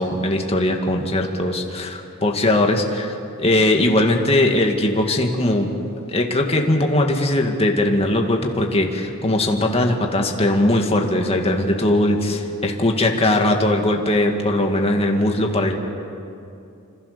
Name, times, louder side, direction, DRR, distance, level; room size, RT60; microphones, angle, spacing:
voice 1, 0.0-5.7 6.1-15.7, left 1 dB, 30° left, 2 dB, 2.2 m, -20 dB
27.0 x 26.5 x 6.9 m, 2.6 s
head